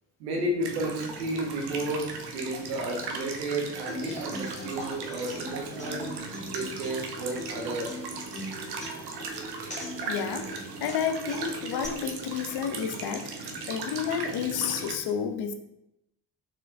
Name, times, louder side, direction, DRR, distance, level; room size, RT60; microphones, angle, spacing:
voice 1, 0.2-2.1 2.3-6.0 6.5-7.9, right 1 dB, 80° right, 0 dB, 1.1 m, -32 dB
sound 1, 0.6-14.9, right 4 dB, 50° right, 0.9 m, -38 dB
Human voice / Acoustic guitar, 3.9-11.9, equal, 15° left, 1.3 m, -41 dB
voice 2, 10.1-10.5 10.8-15.5, left 8 dB, 55° left, 8 dB, 0.6 m, -31 dB
4.4 x 4.3 x 2.6 m, 0.85 s
figure-of-eight pair, 40°, 49 cm